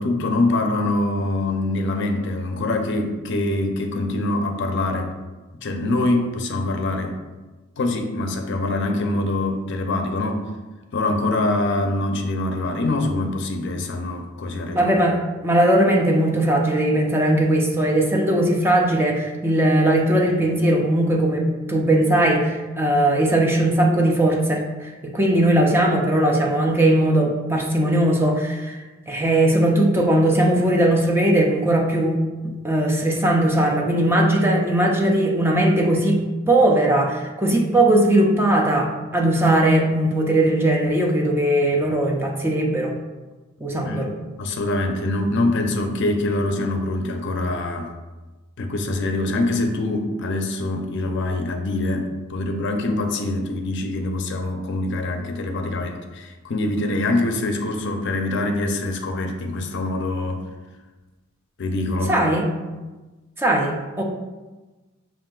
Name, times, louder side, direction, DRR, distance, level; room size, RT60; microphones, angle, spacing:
voice 1, 0.0-5.1 5.6-7.2 7.8-10.5 10.9-14.9 43.8-44.1 44.4-47.9 48.6-60.4 61.6-62.1, left 2 dB, 60° left, 5 dB, 0.5 m, -24 dB
voice 2, 14.7-28.8 29.1-32.2 32.4-42.9 43.6-44.1 62.1-62.4 63.4-64.0, right 1 dB, 10° right, 0 dB, 0.5 m, -19 dB
5.6 x 2.5 x 3.7 m, 1.2 s
head